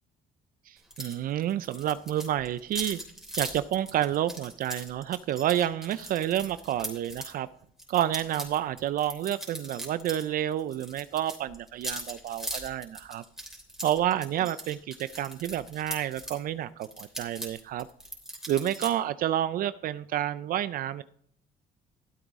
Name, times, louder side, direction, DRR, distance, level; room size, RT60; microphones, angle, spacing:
voice 1, 0.7-3.0 3.4-7.5 7.9-13.2 13.8-17.9 18.5-21.0, right 12 dB, 60° right, 15 dB, 0.4 m, -29 dB
sound 1, 0.9-1.2 1.4-7.3 7.8-10.3 10.5-16.4 16.8-18.9, right 1 dB, 5° right, 3.1 m, -40 dB
13.0 x 8.0 x 3.6 m, 0.66 s
cardioid pair, 110°, 17 cm